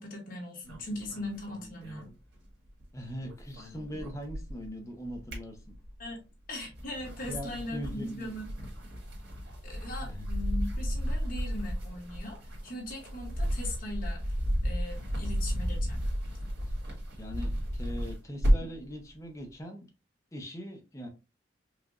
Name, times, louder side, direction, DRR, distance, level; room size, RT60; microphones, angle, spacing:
voice 1, 0.0-2.1 6.0-6.2 6.5-8.5 9.6-14.3 14.6-16.0, left 1 dB, 50° left, 1.7 m, -39 dB
sound 1, 0.6-2.8 3.1-4.7 5.1-6.1 6.6-18.8, equal, 65° right, 2.0 m, -33 dB
voice 2, 2.9-5.7 7.3-8.3 10.0-10.3 17.2-19.9 20.3-21.1, equal, 15° left, 0.9 m, -41 dB
4.9 x 2.5 x 2.5 m
head